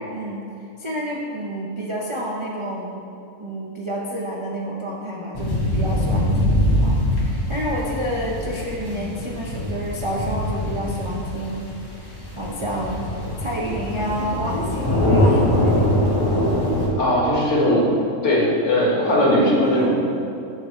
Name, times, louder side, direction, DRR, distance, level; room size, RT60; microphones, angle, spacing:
voice 1, 0.1-0.5 0.8-12.1 12.4-13.1 13.4-16.1 17.6-17.8 19.6-19.9, equal, 40° right, -4 dB, 0.4 m, -29 dB
sound 1, 5.3-16.9, left 1 dB, 15° left, 1.0 m, -23 dB
voice 2, 17.0-17.8 18.2-19.9, left 1 dB, 50° left, -5 dB, 1.9 m, -18 dB
9.2 x 6.7 x 3.2 m, 2.7 s
omnidirectional pair, 1.6 m